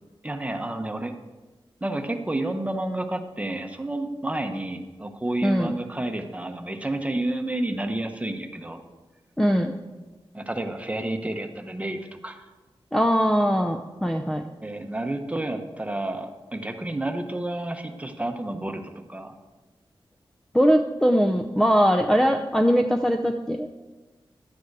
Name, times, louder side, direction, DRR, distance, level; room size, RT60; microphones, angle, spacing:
voice 1, 0.2-1.1 1.8-8.8 10.3-12.5 14.6-19.3, right 1 dB, 15° right, 5 dB, 1.0 m, -30 dB
voice 2, 5.4-5.7 9.4-9.7 12.9-14.4 20.5-23.7, equal, 5° left, 4 dB, 0.6 m, -21 dB
11.5 x 9.2 x 4.7 m, 1.2 s
wide cardioid pair, 100°, 9 cm